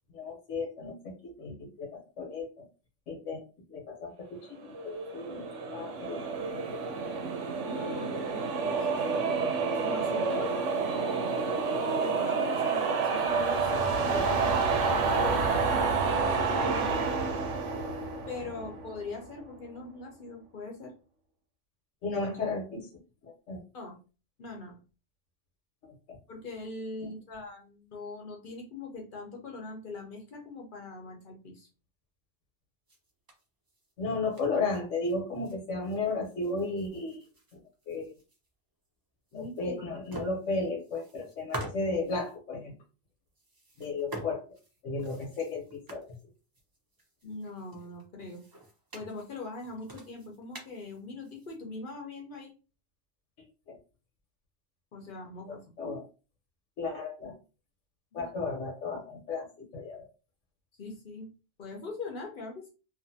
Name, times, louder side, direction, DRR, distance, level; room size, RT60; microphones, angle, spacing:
voice 1, 0.1-2.7 3.1-3.4 3.7-6.8 22.0-22.9 23.2-23.6 26.1-26.2 27.0-27.1 34.0-37.2 37.5-37.6 37.9-38.1 39.3-42.7 43.8-44.4 44.8-46.2 53.7-53.8 55.5-56.0 56.8-57.3 58.1-60.1, left 3 dB, 80° left, 0 dB, 1.2 m, -34 dB
sound 1, 4.7-19.1, right 4 dB, 80° right, 1.0 m, -29 dB
voice 2, 7.6-9.4 9.8-10.6 11.8-14.6 14.9-17.1 18.3-20.9 23.7-24.0 24.4-24.8 26.3-31.7 39.3-39.9 47.2-48.4 48.9-52.5 54.9-56.0 58.1-58.3 60.8-61.3 61.6-62.7, left 3 dB, 50° left, 1 dB, 0.8 m, -42 dB
sound 2, 32.9-35.5 35.8-38.5 38.8-38.9 39.3-39.8 40.0-42.4 43.3-51.6, right 1 dB, 30° right, 0.4 m, -47 dB
2.5 x 2.5 x 2.6 m, 0.33 s
omnidirectional pair, 1.2 m